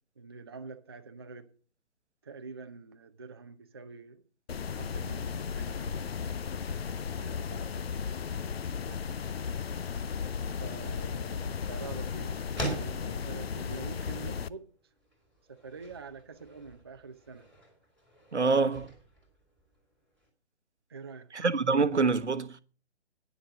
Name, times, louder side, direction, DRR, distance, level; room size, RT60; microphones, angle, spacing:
voice 1, 0.2-1.5 2.2-4.2 4.7-6.2 6.6-7.9 8.8-9.2 10.6-14.7 15.5-17.5 18.3-18.8 20.9-21.3, right 4 dB, 25° right, 0.4 m, -46 dB
sound 1, 4.5-14.5, left 6 dB, 65° left, 0.6 m, -35 dB
sound 2, 14.7-20.3, right 1 dB, 5° left, 2.4 m, -45 dB
voice 2, 18.3-18.9 21.3-22.6, right 4 dB, 85° right, 1.0 m, -26 dB
10.0 x 6.4 x 7.3 m
figure-of-eight pair, 145°, 34 cm